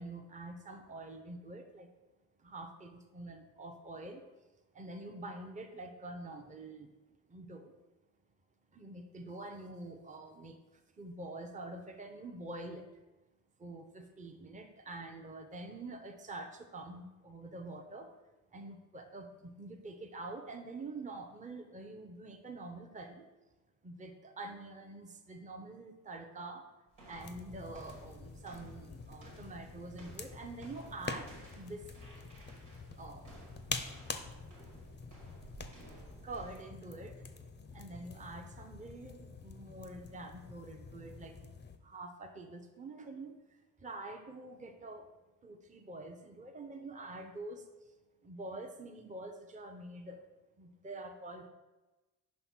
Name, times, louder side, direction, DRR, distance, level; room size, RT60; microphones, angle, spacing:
voice 1, 0.0-1.9 2.4-4.2 4.7-6.9 7.3-7.7 8.7-12.9 13.6-18.1 18.5-23.3 23.8-26.7 27.0-31.9 33.0-33.3 36.2-37.2 37.7-41.5 41.8-45.1 45.4-47.9 48.2-50.2 50.6-51.5, right 2 dB, 15° right, 4 dB, 0.7 m, -46 dB
sound 1, 26.9-36.8, right 2 dB, 85° right, 1.8 m, -56 dB
sound 2, 27.2-41.8, left 4 dB, 25° left, 0.6 m, -46 dB
5.2 x 4.4 x 4.3 m, 1.1 s
supercardioid pair, 50°, 47 cm